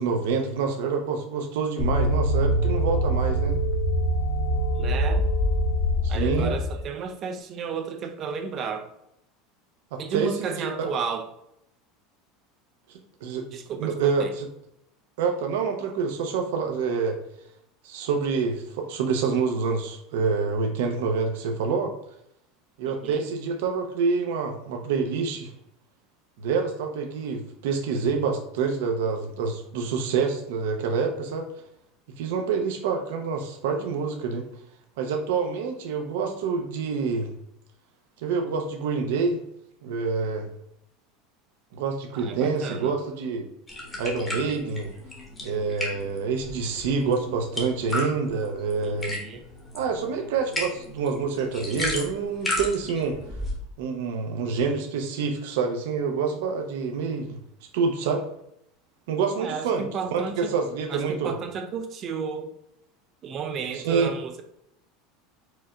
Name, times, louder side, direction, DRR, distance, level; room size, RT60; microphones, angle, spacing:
voice 1, 0.0-3.6 6.0-6.5 9.9-10.9 12.9-13.5 13.8-14.5 15.2-17.2 17.8-21.9 22.8-25.5 26.4-31.5 32.2-34.5 35.0-37.3 38.2-39.4 39.8-40.5 41.7-43.5 44.0-44.9 45.4-49.2 49.7-53.2 53.8-57.4 57.7-58.2 59.1-59.8 60.1-61.3 63.7-64.1, right 5 dB, 75° right, 3 dB, 0.7 m, -27 dB
sound 1, 1.8-6.8, equal, 55° left, 1.4 m, -24 dB
voice 2, 4.8-5.3 6.1-8.9 10.0-11.3 13.5-14.3 22.9-23.2 42.1-42.9 48.8-49.4 59.4-60.5 60.9-62.5 63.2-64.4, right 6 dB, 30° right, 7 dB, 0.4 m, -33 dB
sound 2, 43.7-53.5, left 1 dB, 10° left, 1.0 m, -35 dB
4.8 x 2.5 x 4.3 m, 0.77 s
supercardioid pair, 170°, 0 cm